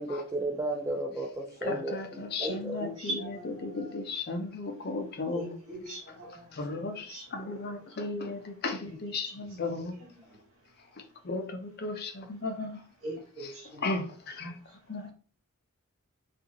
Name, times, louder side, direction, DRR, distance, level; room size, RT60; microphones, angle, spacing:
voice 1, 0.0-2.8, right 1 dB, 15° right, 0.3 m, -34 dB
voice 2, 1.6-3.2 3.4-5.5 6.5-9.9 11.2-12.8 13.8-14.5 14.9-15.1, left 3 dB, 45° left, 0.5 m, -35 dB
voice 3, 2.4-4.0 4.4-4.5 5.3-8.0 8.3-8.4 8.8-10.4 13.0-13.9 14.5-15.1, right 1 dB, 75° right, 1.2 m, -42 dB
2.5 x 2.4 x 2.9 m
head